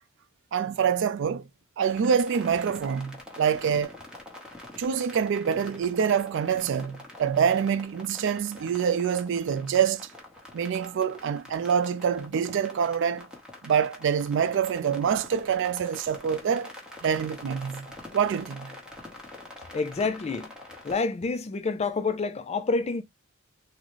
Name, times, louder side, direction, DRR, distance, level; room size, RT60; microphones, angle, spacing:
voice 1, 0.5-1.5 1.8-3.9 4.8-10.1 10.5-13.3 13.6-16.7 17.0-17.9 18.1-18.7, right 7 dB, 60° right, 0.3 m, -26 dB
sound 1, 1.9-20.9, left 2 dB, 5° right, 0.9 m, -45 dB
voice 2, 19.7-20.5 20.8-23.0, left 4 dB, 30° left, 0.4 m, -28 dB
3.8 x 2.1 x 2.9 m
head